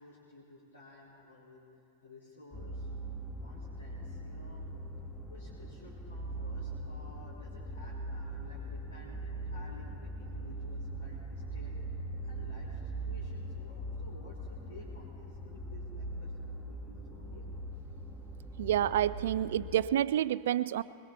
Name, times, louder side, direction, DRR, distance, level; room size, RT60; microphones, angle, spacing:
voice 1, 0.0-1.6 2.0-2.9 3.4-4.6 5.3-11.7 12.2-17.5, left 1 dB, 70° left, -8 dB, 3.8 m, -54 dB
sound 1, 2.5-19.8, right 1 dB, 5° left, 1.4 m, -41 dB
voice 2, 18.6-20.8, right 11 dB, 60° right, 17 dB, 0.3 m, -29 dB
25.5 x 22.0 x 2.3 m, 2.6 s
figure-of-eight pair, 90°, 0 cm